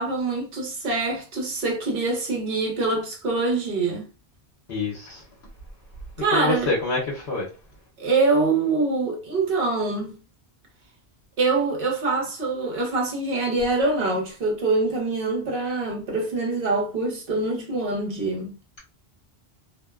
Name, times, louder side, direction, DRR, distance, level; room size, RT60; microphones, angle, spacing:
voice 1, 0.0-4.1 6.2-6.7 8.0-10.2 11.4-18.5, right 3 dB, 60° right, 1.0 m, -24 dB
voice 2, 4.7-5.2 6.3-7.5, left 3 dB, 70° left, 1.0 m, -26 dB
2.6 x 2.1 x 2.3 m
omnidirectional pair, 1.1 m